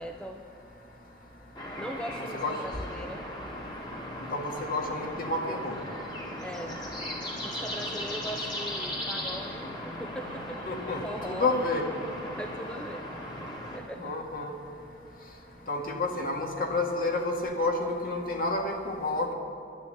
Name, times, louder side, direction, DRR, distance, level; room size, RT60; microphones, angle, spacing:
voice 1, 0.0-4.3 6.4-10.7 11.0-11.6 12.3-13.1 13.7-14.2 14.9-15.7, equal, 5° left, 4 dB, 0.5 m, -41 dB
sound 1, 1.6-13.8, left 1 dB, 25° left, 1.9 m, -37 dB
voice 2, 4.3-5.8 10.7-11.9 14.0-14.5 15.7-17.7 18.0-19.3, left 2 dB, 50° left, 1 dB, 1.9 m, -30 dB
11.5 x 11.0 x 7.7 m, 2.8 s
head